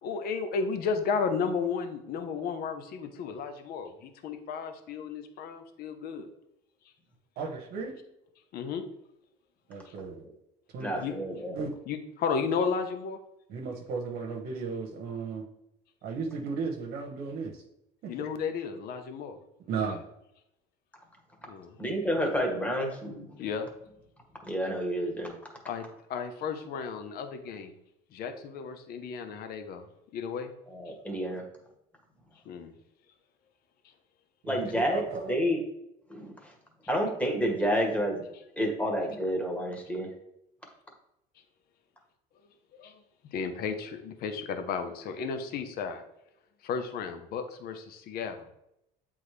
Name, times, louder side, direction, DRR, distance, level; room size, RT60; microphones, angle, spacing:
voice 1, 0.0-6.3 8.5-8.8 11.0-11.1 11.9-13.2 18.1-19.4 21.5-21.7 23.4-23.7 25.7-25.8 26.1-27.7 28.1-29.8 30.1-30.5 32.5-32.7 42.8-42.9 43.3-46.0 46.6-48.3, left 5 dB, 60° left, 7 dB, 0.9 m, -33 dB
voice 2, 7.4-8.0 9.7-10.2 10.7-10.9 11.5-11.8 13.5-15.4 16.0-17.6 18.0-18.1 19.7-20.0 34.4-34.6 34.9-35.3, right 5 dB, 65° right, 1 dB, 1.1 m, -35 dB
voice 3, 10.8-11.5 21.8-23.3 24.4-25.3 30.7-31.4 34.4-35.0 35.3-35.6 36.1-36.5 36.9-38.2 38.6-40.1, equal, 10° left, 1 dB, 1.7 m, -29 dB
8.0 x 3.6 x 3.3 m, 0.82 s
supercardioid pair, 95°, 17 cm